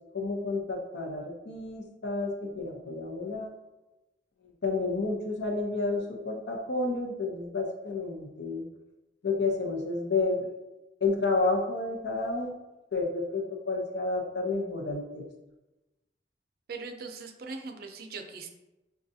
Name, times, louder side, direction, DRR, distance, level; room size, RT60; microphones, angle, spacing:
voice 1, 0.1-3.5 4.6-8.6 9.2-10.5 11.0-12.5 12.9-15.3, left 3 dB, 70° left, 0 dB, 0.7 m, -30 dB
voice 2, 16.7-18.5, right 4 dB, 60° right, 4 dB, 0.5 m, -40 dB
6.4 x 2.4 x 2.7 m, 1.0 s
head